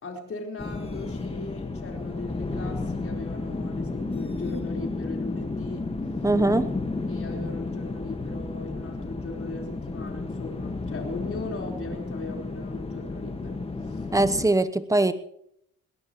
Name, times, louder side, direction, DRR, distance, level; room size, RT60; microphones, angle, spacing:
voice 1, 0.0-5.9 6.4-6.6 7.1-14.0, left 3 dB, 45° left, 1 dB, 4.4 m, -39 dB
sound 1, 0.6-14.5, left 3 dB, 20° left, 1.6 m, -32 dB
voice 2, 6.2-6.7 14.1-15.1, right 2 dB, 10° right, 12 dB, 0.9 m, -21 dB
21.5 x 18.5 x 3.1 m, 0.72 s
cardioid pair, 90°, 30 cm